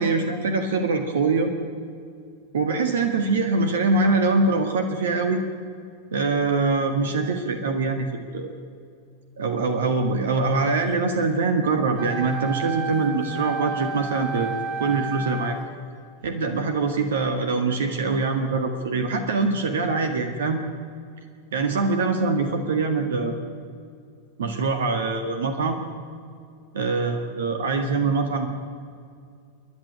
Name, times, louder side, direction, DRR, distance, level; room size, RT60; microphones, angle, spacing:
voice 1, 0.0-1.5 2.5-5.4 6.1-8.5 9.4-15.6 16.2-20.6 21.5-23.4 24.4-25.8 26.7-28.5, right 3 dB, 60° right, 6 dB, 1.7 m, -23 dB
Wind instrument woodwind instrument, 11.9-15.7, right 4 dB, 40° right, 2.7 m, -32 dB
29.5 x 10.5 x 9.7 m, 2.3 s
figure-of-eight pair, 90°, 0 cm